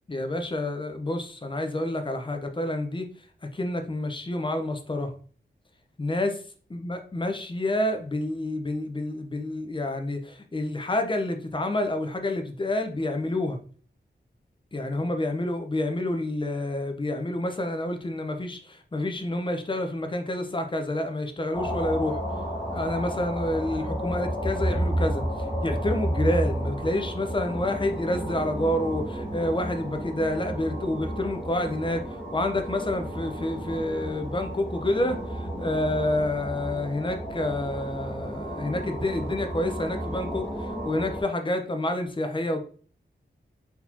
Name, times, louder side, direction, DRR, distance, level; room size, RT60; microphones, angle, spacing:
voice 1, 0.1-3.1 3.5-5.1 6.0-6.4 6.7-13.6 14.7-22.2 22.7-25.2 25.6-42.6, left 1 dB, 25° left, 5 dB, 0.8 m, -28 dB
sound 1, 21.5-41.2, equal, 5° left, 1.6 m, -32 dB
4.2 x 4.1 x 2.8 m, 0.42 s
wide cardioid pair, 125°, 19 cm